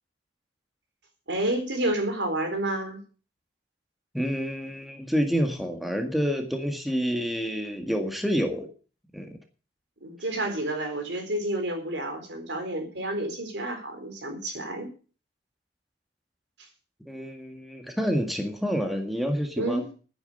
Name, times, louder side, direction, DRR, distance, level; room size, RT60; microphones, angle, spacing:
voice 1, 1.3-3.0 10.0-14.9 19.6-19.9, right 1 dB, 80° right, 5 dB, 4.2 m, -30 dB
voice 2, 4.1-8.7 9.1-9.3 17.1-19.9, equal, ahead, 4 dB, 1.8 m, -28 dB
11.0 x 9.9 x 6.8 m, 0.38 s
head